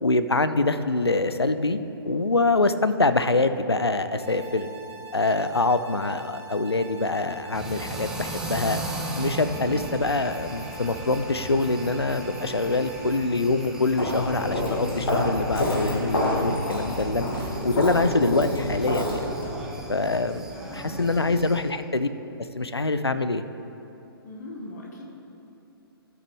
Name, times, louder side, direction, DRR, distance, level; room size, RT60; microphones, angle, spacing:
voice 1, 0.0-1.8 2.0-4.7 5.1-8.8 9.2-17.3 17.6-19.3 19.9-20.4 20.7-22.1 22.6-23.4, left 2 dB, 85° left, 11 dB, 0.4 m, -24 dB
sound 1, 4.2-13.2, right 4 dB, 35° right, 1.3 m, -43 dB
sound 2, 7.5-21.6, right 1 dB, 5° right, 0.6 m, -37 dB
Walk footsteps, 13.9-19.5, left 1 dB, 60° left, 1.8 m, -28 dB
voice 2, 20.5-21.4 24.2-25.0, left 1 dB, 45° left, -1 dB, 1.5 m, -41 dB
13.5 x 6.0 x 3.2 m, 2.9 s
figure-of-eight pair, 125°, 13 cm